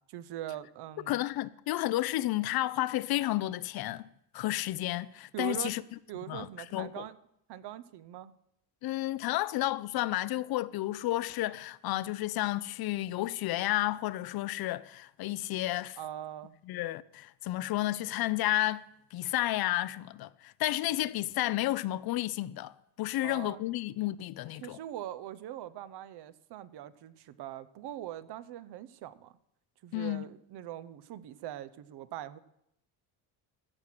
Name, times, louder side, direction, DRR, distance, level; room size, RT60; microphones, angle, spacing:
voice 1, 0.1-1.2 5.3-5.7 6.1-7.1 7.5-8.3 16.0-16.6 23.2-23.6 24.6-29.4 29.8-32.4, right 12 dB, 60° right, 0.7 m, -42 dB
voice 2, 1.1-4.1 4.3-5.8 6.3-7.0 8.8-16.0 16.7-18.9 19.1-24.8 29.9-30.3, left 16 dB, 55° left, 0.5 m, -31 dB
15.0 x 6.2 x 5.8 m
cardioid pair, 105°, 44 cm